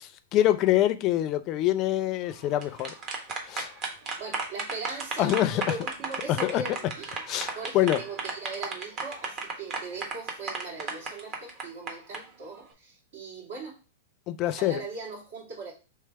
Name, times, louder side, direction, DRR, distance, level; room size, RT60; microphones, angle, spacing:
voice 1, 0.0-2.9 3.5-3.7 5.2-5.6 6.3-6.6 7.3-8.0 14.3-14.8, left 13 dB, 40° left, 0.4 m, -25 dB
sound 1, 2.4-12.2, right 4 dB, 35° right, 1.2 m, -34 dB
voice 2, 4.2-7.1 7.5-13.8 14.4-15.7, right 3 dB, 65° right, 2.3 m, -40 dB
3.3 x 3.3 x 4.6 m
hypercardioid pair, 125°, 0 cm